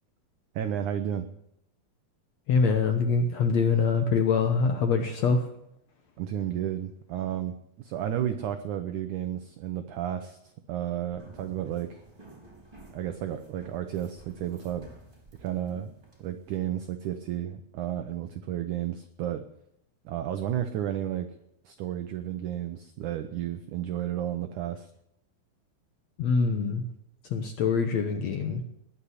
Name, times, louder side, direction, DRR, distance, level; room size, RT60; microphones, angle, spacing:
voice 1, 0.6-1.3 6.2-12.0 12.9-14.9 15.4-15.9 16.2-19.5 20.1-21.3 21.7-24.9, right 11 dB, 75° right, 8 dB, 1.9 m, -32 dB
voice 2, 2.5-5.4 26.2-26.9 27.3-28.6, left 5 dB, 65° left, 6 dB, 1.7 m, -24 dB
sound 1, 11.1-16.6, right 2 dB, 15° right, 3.5 m, -52 dB
19.5 x 7.0 x 9.8 m, 0.78 s
omnidirectional pair, 4.4 m